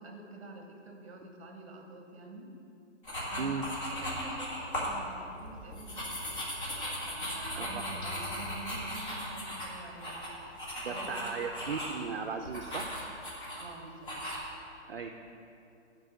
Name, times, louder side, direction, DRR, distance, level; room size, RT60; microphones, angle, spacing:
voice 1, 0.0-2.5 3.3-6.3 7.0-10.3 10.9-11.4 13.6-14.1, right 2 dB, 25° right, 2 dB, 1.0 m, -47 dB
sound 1, 3.0-5.0 5.3-12.0 12.4-13.6 14.0-14.4, equal, 40° left, 2.1 m, -37 dB
voice 2, 10.8-12.9 14.9-15.1, right 5 dB, 50° right, 5 dB, 0.5 m, -36 dB
9.3 x 4.5 x 6.3 m, 2.6 s
hypercardioid pair, 170°, 37 cm